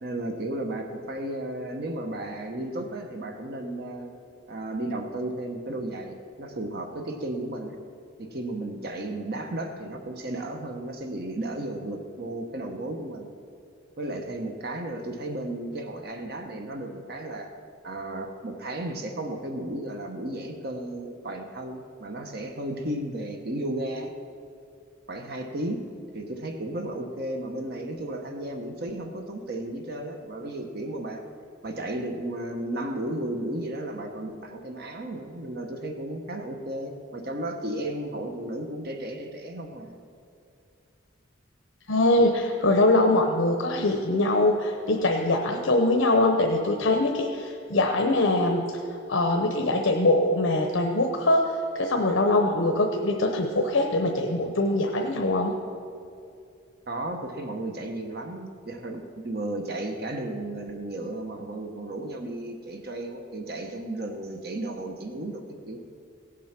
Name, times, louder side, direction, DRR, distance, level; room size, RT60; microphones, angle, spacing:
voice 1, 0.0-4.1 4.5-7.8 8.2-13.3 14.0-17.5 17.8-24.1 25.1-25.8 26.1-31.3 31.6-40.0 56.9-65.9, right 1 dB, 50° right, 4 dB, 1.0 m, -34 dB
voice 2, 41.9-48.7 49.1-55.5, left 2 dB, 75° left, 3 dB, 0.8 m, -23 dB
17.0 x 7.6 x 5.9 m, 2.5 s
head